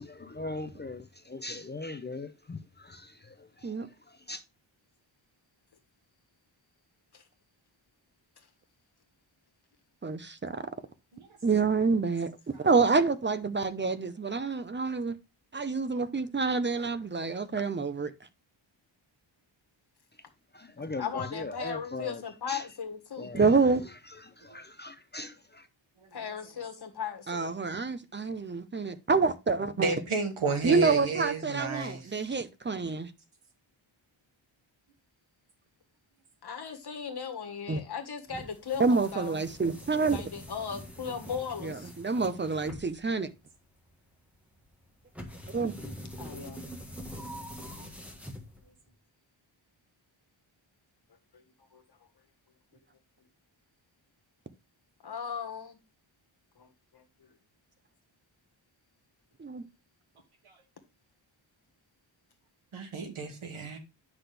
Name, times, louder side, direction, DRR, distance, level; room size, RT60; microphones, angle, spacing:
voice 1, 0.0-4.4 20.1-20.2 20.5-22.2 22.5-22.7 23.2-25.7, left 2 dB, 20° left, 0.5 m, -40 dB
voice 2, 10.0-10.6 11.4-12.3 12.6-15.2 15.5-18.1 23.3-23.8 27.3-29.9 30.6-33.1 37.7-37.8 38.8-40.2 41.6-43.3 45.5-45.7 59.4-59.6, right 4 dB, 25° right, 0.6 m, -27 dB
voice 3, 21.0-23.3 26.1-27.5 36.4-39.4 40.1-41.9 46.2-46.6 51.3-51.4 51.7-51.8 55.0-55.8 56.6-56.7 56.9-57.3, left 6 dB, 55° left, 1.6 m, -37 dB
voice 4, 29.8-32.4 47.8-47.9 60.5-60.6 62.7-63.8, right 4 dB, 85° right, 2.1 m, -32 dB
sound 1, 38.3-48.9, equal, 5° right, 1.4 m, -45 dB
9.6 x 6.0 x 3.4 m
wide cardioid pair, 175°, 48 cm